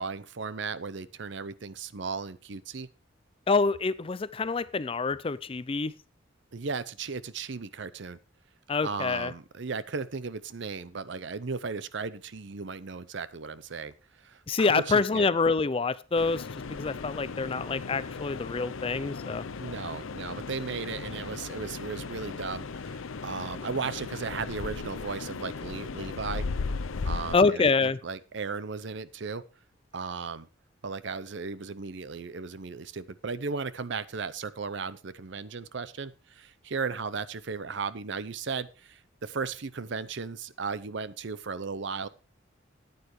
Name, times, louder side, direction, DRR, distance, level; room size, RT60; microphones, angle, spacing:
voice 1, 0.0-2.9 6.5-8.2 8.8-13.9 14.2-15.3 17.4-17.6 19.6-26.5 27.0-29.4 29.9-30.5 30.8-42.1, right 4 dB, 60° right, 0.6 m, -36 dB
voice 2, 3.5-5.9 8.7-9.3 14.5-16.4 16.7-19.5 27.3-28.0, left 4 dB, 25° left, 0.4 m, -26 dB
sound 1, 16.2-27.4, left 4 dB, 85° left, 0.6 m, -37 dB
14.0 x 9.3 x 3.1 m
head